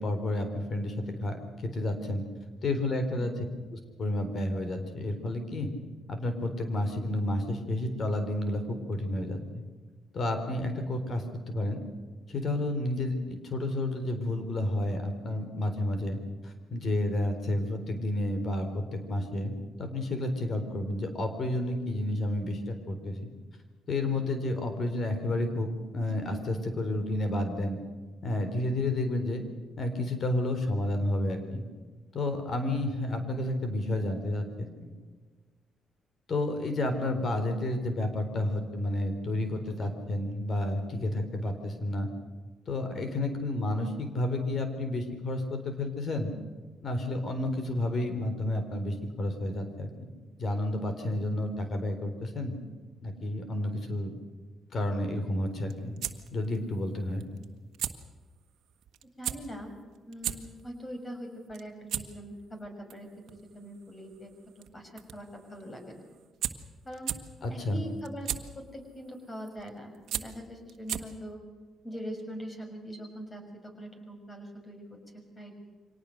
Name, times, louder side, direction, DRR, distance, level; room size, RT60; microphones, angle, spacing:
voice 1, 0.0-2.2 2.6-3.5 3.7-5.7 6.1-9.6 10.1-11.8 12.3-19.5 19.8-23.3 23.9-27.8 28.2-29.4 29.8-31.6 32.1-34.9 36.3-42.1 42.7-46.3 46.8-49.9 50.4-52.5 53.0-54.1 54.7-56.0 56.3-57.2 67.4-67.8, left 1 dB, 50° left, 7 dB, 3.9 m, -31 dB
sound 1, 55.5-71.3, right 11 dB, 75° right, 1.4 m, -39 dB
voice 2, 59.2-59.7 60.1-63.1 63.5-64.3 64.7-66.0 66.8-67.1 67.5-68.3 68.7-71.4 71.8-75.0 75.3-75.5, equal, 25° left, 5 dB, 6.2 m, -42 dB
25.0 x 18.5 x 6.6 m, 1.4 s
cardioid pair, 90°, 0 cm